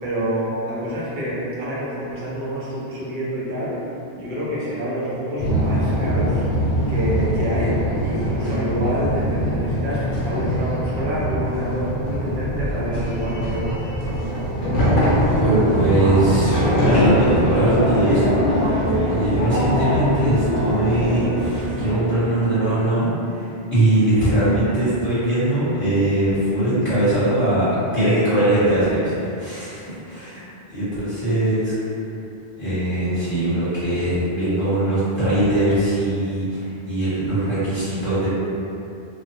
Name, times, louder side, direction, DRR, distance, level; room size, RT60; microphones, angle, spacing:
voice 1, 0.0-3.8 4.2-6.4 6.9-13.7, equal, 55° right, -8 dB, 0.8 m, -27 dB
sound 1, 5.4-21.9, equal, 60° left, 0.8 m, -22 dB
voice 2, 15.0-30.4 30.7-31.9 32.6-38.3, right 1 dB, 10° left, -16 dB, 1.5 m, -21 dB
2.5 x 2.2 x 2.8 m, 2.7 s
omnidirectional pair, 1.0 m